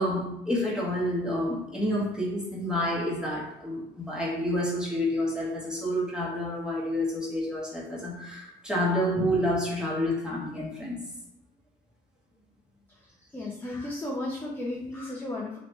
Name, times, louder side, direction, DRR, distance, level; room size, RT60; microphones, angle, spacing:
voice 1, 0.0-11.0, equal, 5° right, -6 dB, 1.3 m, -29 dB
voice 2, 13.3-15.6, left 2 dB, 10° left, -4 dB, 0.6 m, -34 dB
3.1 x 3.0 x 3.1 m, 0.79 s
cardioid pair, 110°, 17 cm